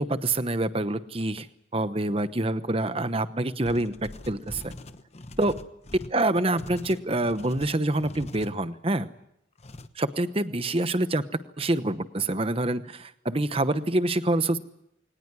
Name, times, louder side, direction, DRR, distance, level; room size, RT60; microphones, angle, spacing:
voice 1, 0.0-1.5 1.7-3.9 4.3-4.7 5.4-5.6 6.1-9.1 10.0-11.2 11.6-14.6, right 2 dB, 30° right, 12 dB, 1.0 m, -26 dB
sound 1, 3.6-8.5 9.6-9.9, left 1 dB, 35° left, 1.0 m, -42 dB
22.5 x 19.5 x 9.8 m, 0.80 s
head